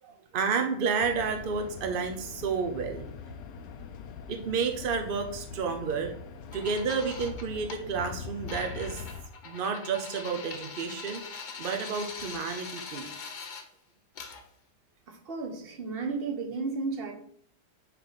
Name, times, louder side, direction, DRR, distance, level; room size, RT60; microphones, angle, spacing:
voice 1, 0.0-3.1 4.3-6.1 6.5-9.1 9.4-11.2 11.6-13.1, right 5 dB, 75° right, 5 dB, 0.4 m, -31 dB
sound 1, 1.0-9.2, left 6 dB, 90° left, 1.3 m, -43 dB
sound 2, 6.5-7.8 8.5-13.6 14.1-14.4, left 4 dB, 70° left, 0.4 m, -42 dB
voice 2, 15.1-17.1, right 4 dB, 45° right, 4 dB, 0.9 m, -33 dB
8.9 x 3.3 x 4.0 m, 0.63 s
omnidirectional pair, 1.8 m